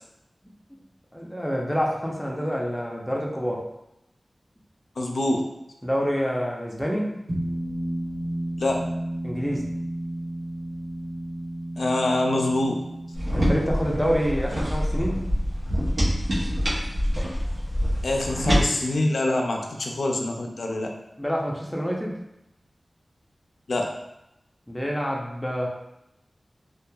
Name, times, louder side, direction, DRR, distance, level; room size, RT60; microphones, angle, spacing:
voice 1, 1.1-3.6 5.8-7.2 9.2-9.7 13.3-15.3 21.2-22.2 24.7-25.7, equal, 10° left, -2 dB, 0.5 m, -27 dB
voice 2, 5.0-5.4 8.6-8.9 11.8-12.8 18.0-20.9 23.7-24.0, left 1 dB, 85° left, 2 dB, 0.3 m, -25 dB
sound 1, 7.3-18.0, right 1 dB, 50° right, 1.2 m, -34 dB
sound 2, 13.1-18.6, equal, 80° right, 0.7 m, -25 dB
2.8 x 2.2 x 2.2 m, 0.87 s
wide cardioid pair, 50°, 0 cm